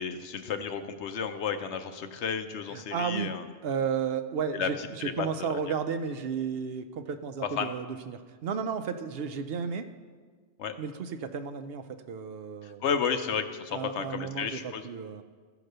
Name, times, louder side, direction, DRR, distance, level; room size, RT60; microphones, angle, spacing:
voice 1, 0.0-3.4 4.5-4.7 5.0-5.6 7.6-7.7 10.6-10.8 12.6-14.8, left 6 dB, 75° left, 8 dB, 1.0 m, -32 dB
voice 2, 2.7-3.3 3.6-9.9 10.8-12.8 13.7-15.2, right 6 dB, 65° right, 8 dB, 0.8 m, -33 dB
14.0 x 4.9 x 6.6 m, 1.5 s
omnidirectional pair, 1.2 m